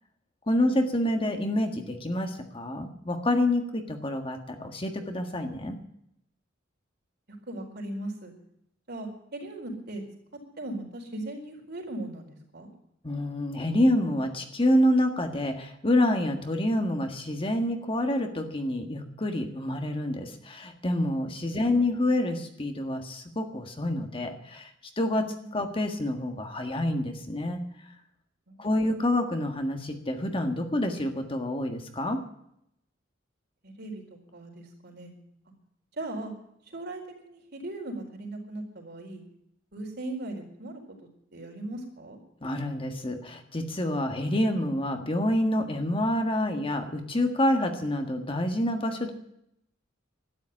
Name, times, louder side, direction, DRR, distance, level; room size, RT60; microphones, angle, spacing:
voice 1, 0.5-5.8 13.0-24.7 25.0-27.6 28.6-32.2 42.4-49.1, left 1 dB, 25° left, 5 dB, 1.6 m, -27 dB
voice 2, 7.5-8.3 8.9-10.0 10.6-12.7 25.4-25.5 28.5-28.7 33.6-35.1 36.0-36.3 36.7-39.2 39.7-40.8 41.3-42.2, right 1 dB, 55° right, 2 dB, 4.3 m, -38 dB
12.5 x 10.5 x 9.9 m, 0.77 s
head